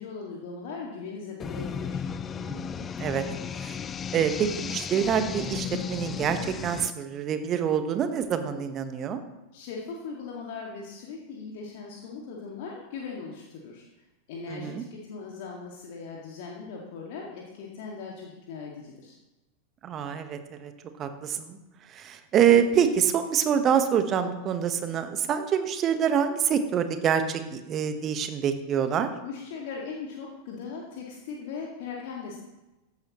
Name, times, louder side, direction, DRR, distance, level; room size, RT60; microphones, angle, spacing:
voice 1, 0.0-2.1 9.5-13.9 14.3-19.2 29.2-32.4, left 5 dB, 50° left, -2 dB, 2.1 m, -39 dB
sound 1, 1.4-6.9, left 7 dB, 20° left, 0.5 m, -34 dB
voice 2, 2.4-3.2 3.6-3.8 4.1-9.2 14.5-14.8 19.8-20.7 21.0-21.6 21.9-29.1, right 8 dB, 30° right, 8 dB, 1.3 m, -26 dB
15.5 x 11.5 x 3.1 m, 1.0 s
figure-of-eight pair, 90°, 0 cm